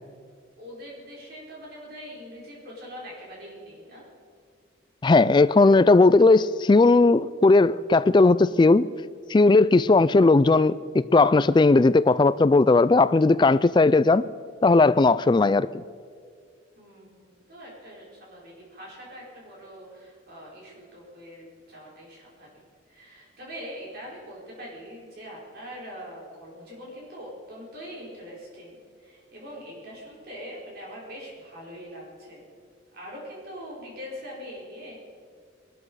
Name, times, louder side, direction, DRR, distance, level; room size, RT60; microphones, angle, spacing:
voice 1, 0.6-4.1 16.8-22.5 22.9-32.4 32.9-34.9, equal, 55° right, 5.1 m, -42 dB
voice 2, 5.0-8.9 9.3-14.2 14.6-15.7, left 3 dB, 25° left, 0.3 m, -17 dB
21.5 x 12.5 x 4.8 m
head